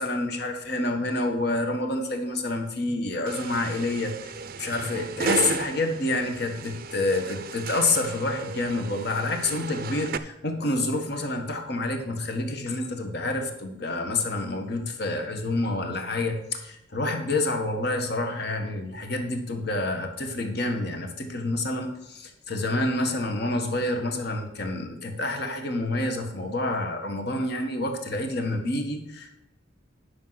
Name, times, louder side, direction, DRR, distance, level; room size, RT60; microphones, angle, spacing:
voice 1, 0.0-29.3, left 2 dB, 55° left, 4 dB, 1.6 m, -28 dB
sound 1, 3.3-10.2, right 5 dB, 50° right, 0.5 m, -34 dB
10.5 x 6.5 x 5.8 m, 0.88 s
head